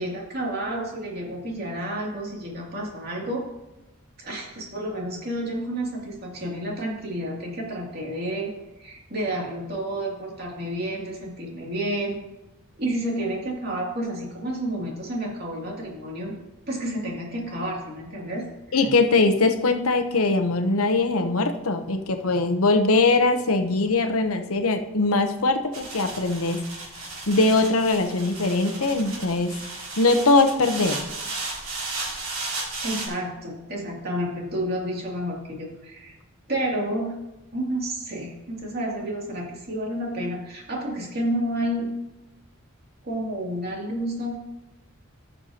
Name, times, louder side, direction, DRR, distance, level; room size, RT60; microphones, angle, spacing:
voice 1, 0.0-3.4 4.2-8.5 8.8-12.2 12.8-16.3 16.7-18.9 32.8-36.1 36.5-37.2 37.5-41.9 43.0-44.4, right 1 dB, 45° right, -3 dB, 2.7 m, -30 dB
voice 2, 18.7-26.6 27.3-29.5 30.0-31.0, left 3 dB, 90° left, 7 dB, 0.9 m, -21 dB
sound 1, 25.7-33.1, right 3 dB, 85° right, 3.8 m, -34 dB
17.0 x 6.7 x 2.9 m, 0.97 s
head